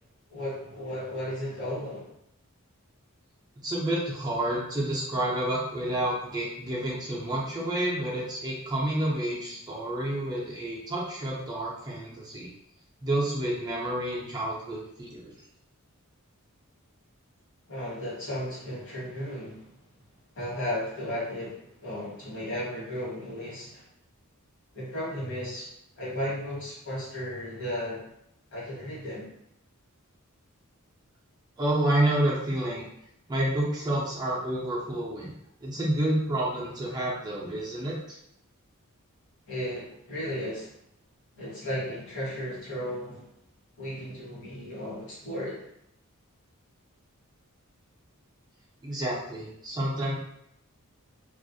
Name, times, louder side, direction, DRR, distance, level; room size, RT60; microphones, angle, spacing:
voice 1, 0.3-2.1 17.7-19.7 20.3-23.8 24.7-25.7 26.0-28.1 28.5-29.3 39.5-40.7 41.3-43.2 43.8-45.6, left 1 dB, 60° left, -7 dB, 1.3 m, -34 dB
voice 2, 3.6-12.5 13.0-15.3 31.6-32.8 33.3-35.3 35.6-38.0 48.8-50.1, right 1 dB, 20° right, -5 dB, 0.4 m, -29 dB
2.3 x 2.0 x 2.6 m, 0.75 s
head